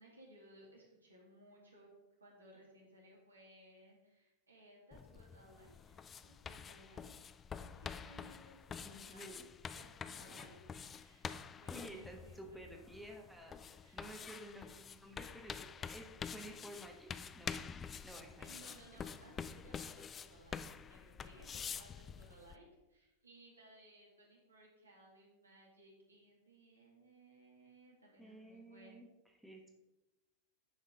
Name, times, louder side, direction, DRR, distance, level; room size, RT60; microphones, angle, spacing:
voice 1, 0.0-1.9 2.2-7.1 7.5-9.3 9.7-10.6 11.0-12.7 13.8-14.0 14.5-15.1 18.4-29.0, right 1 dB, 80° right, -3 dB, 2.3 m, -61 dB
sound 1, 4.9-22.6, left 6 dB, 20° left, 0.3 m, -48 dB
voice 2, 8.7-9.4 9.7-9.9 11.7-14.7 15.0-17.5 18.0-18.7 18.9-19.0 28.2-29.1 29.4-29.8, right 1 dB, ahead, 1 dB, 1.2 m, -53 dB
10.0 x 5.4 x 3.7 m, 1.0 s
figure-of-eight pair, 90°, 0 cm